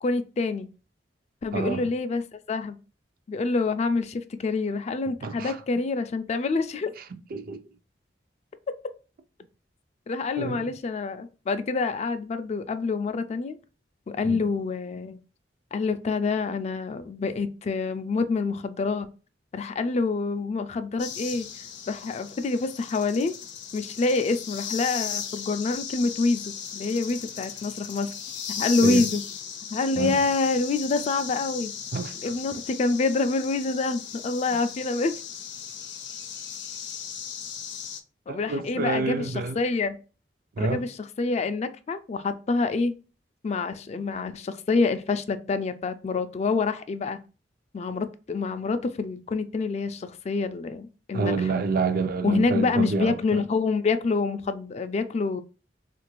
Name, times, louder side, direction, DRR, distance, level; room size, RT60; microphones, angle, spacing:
voice 1, 0.0-0.7 1.4-2.2 2.5-2.8 3.3-6.9 10.1-13.6 14.1-15.2 15.7-19.1 19.5-21.5 21.9-23.4 23.7-28.1 28.6-29.2 29.7-31.7 32.2-35.1 38.3-40.0 40.6-40.9 41.2-42.9 43.4-47.2 47.7-51.3 52.2-55.4, left 3 dB, 40° left, 0.3 m, -27 dB
voice 2, 1.5-1.9 5.2-5.6 7.3-7.6 10.4-10.7 14.2-14.4 28.8-29.0 29.9-30.2 31.9-32.2 38.3-39.6 40.6-40.8 51.1-53.4, right 4 dB, 55° right, 0.4 m, -28 dB
sound 1, 21.0-38.0, left 7 dB, 85° left, 0.6 m, -37 dB
3.5 x 2.5 x 3.0 m
head